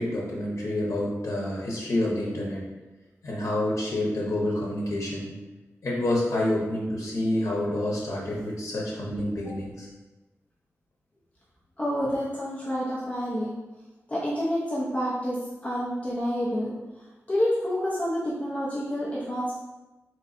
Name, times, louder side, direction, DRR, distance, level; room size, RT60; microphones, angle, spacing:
voice 1, 0.0-2.6 3.2-5.3 5.8-9.9, left 1 dB, 75° left, -4 dB, 0.9 m, -28 dB
voice 2, 11.8-13.5 14.1-15.4 15.6-16.7 17.3-19.5, equal, 25° left, -8 dB, 0.7 m, -28 dB
4.3 x 3.0 x 2.6 m, 1.1 s
wide cardioid pair, 145°, 5 cm